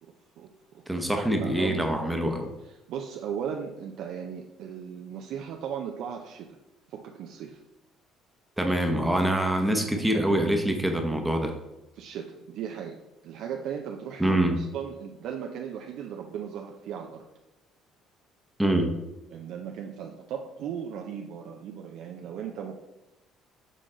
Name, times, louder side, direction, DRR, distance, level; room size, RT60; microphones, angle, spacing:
voice 1, 0.0-0.8 1.2-2.0 2.6-6.5 6.9-7.6 9.8-10.3 12.0-17.2 19.3-22.8, right 8 dB, 70° right, 2 dB, 0.5 m, -37 dB
voice 2, 0.9-2.5 8.6-11.6 14.2-14.6 18.6-18.9, right 1 dB, 5° right, 4 dB, 0.9 m, -25 dB
6.6 x 3.8 x 3.8 m, 0.97 s
cardioid pair, 100°, 0 cm